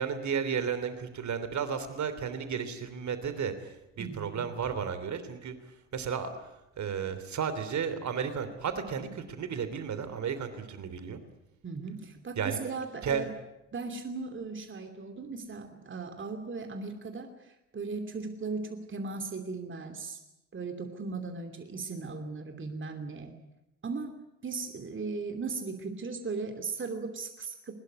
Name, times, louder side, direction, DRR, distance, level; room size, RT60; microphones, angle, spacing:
voice 1, 0.0-5.5 5.9-6.5 6.8-11.2 12.4-12.6 13.0-13.3, right 7 dB, 50° right, 11 dB, 3.3 m, -33 dB
voice 2, 4.0-4.5 11.6-13.3 13.7-20.2 20.5-23.3 23.8-24.2 24.4-27.7, right 4 dB, 30° right, 6 dB, 2.9 m, -37 dB
22.0 x 20.0 x 9.6 m, 0.90 s
hypercardioid pair, 55°, 37 cm